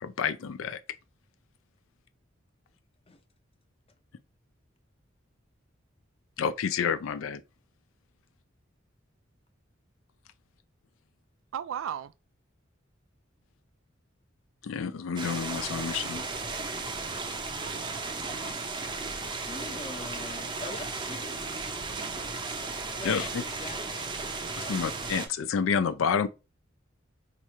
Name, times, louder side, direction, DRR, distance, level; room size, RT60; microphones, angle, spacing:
voice 1, 0.0-0.8 6.4-7.4 14.6-16.2 23.0-23.4 24.6-26.3, left 6 dB, 85° left, 0.4 m, -29 dB
voice 2, 11.5-12.1 17.6-18.6 21.9-22.7, right 9 dB, 85° right, 0.3 m, -39 dB
sound 1, 15.2-25.3, right 3 dB, 25° right, 0.5 m, -35 dB
voice 3, 19.5-21.5 23.0-24.1 24.4-24.8, left 3 dB, 30° left, 0.5 m, -43 dB
2.9 x 2.4 x 4.2 m
head